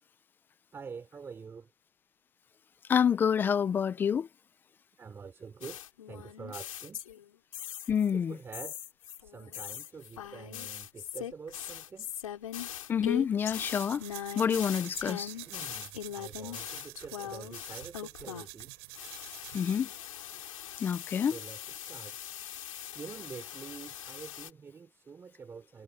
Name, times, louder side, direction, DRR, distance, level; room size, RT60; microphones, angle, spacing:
voice 1, 0.7-1.7 5.0-5.8 6.1-7.0 8.1-8.8 9.3-12.1 15.3-18.8 21.3-22.2 22.9-25.8, right 5 dB, 15° right, 3.4 m, -46 dB
voice 2, 2.9-4.3 7.9-8.4 12.9-14.0 14.4-15.3 19.5-19.9 20.8-21.3, left 7 dB, 10° left, 0.3 m, -27 dB
sound 1, 5.6-8.1 8.5-18.6 18.9-24.5, left 10 dB, 85° left, 5.3 m, -41 dB
sound 2, 13.4-19.9, right 26 dB, 50° right, 8.0 m, -47 dB
hypercardioid pair, 140°, 17 cm